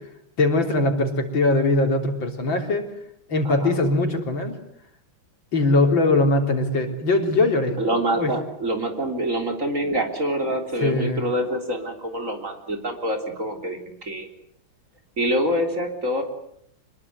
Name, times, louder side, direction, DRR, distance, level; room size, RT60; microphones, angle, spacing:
voice 1, 0.4-2.9 3.3-4.6 5.5-7.8 8.2-8.3 10.8-11.2, left 2 dB, 65° left, 4 dB, 4.2 m, -21 dB
voice 2, 3.4-3.8 7.8-14.3 15.2-16.2, right 1 dB, 35° right, 4 dB, 4.0 m, -26 dB
26.5 x 21.0 x 9.6 m, 0.72 s
omnidirectional pair, 2.3 m